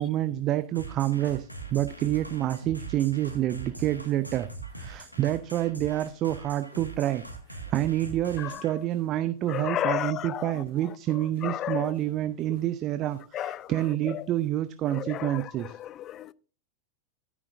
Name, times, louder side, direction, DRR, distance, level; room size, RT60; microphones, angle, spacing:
voice 1, 0.0-4.5 4.8-7.2 7.5-15.8, right 13 dB, 35° right, 0.5 m, -28 dB
sound 1, 0.7-8.7, right 3 dB, 90° right, 1.6 m, -41 dB
sound 2, 6.4-14.5 14.9-15.1, right 2 dB, 90° left, 5.3 m, -62 dB
voice 2, 9.5-10.6 11.1-12.0 13.3-13.7 14.1-14.3 14.9-16.3, left 12 dB, 30° left, 0.4 m, -33 dB
12.5 x 9.7 x 2.5 m
figure-of-eight pair, 90°, 0 cm